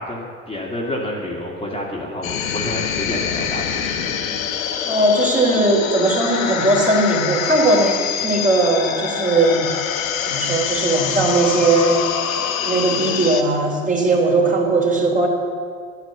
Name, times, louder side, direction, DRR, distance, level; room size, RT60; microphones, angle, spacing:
voice 1, 0.0-4.2, left 1 dB, 15° left, -3 dB, 2.5 m, -29 dB
sound 1, 2.2-13.4, left 8 dB, 80° left, 1.1 m, -25 dB
voice 2, 4.8-9.7 10.2-12.1 12.6-15.3, right 2 dB, 20° right, -1 dB, 3.3 m, -18 dB
10.5 x 9.5 x 8.1 m, 2.1 s
hypercardioid pair, 75°, 40 cm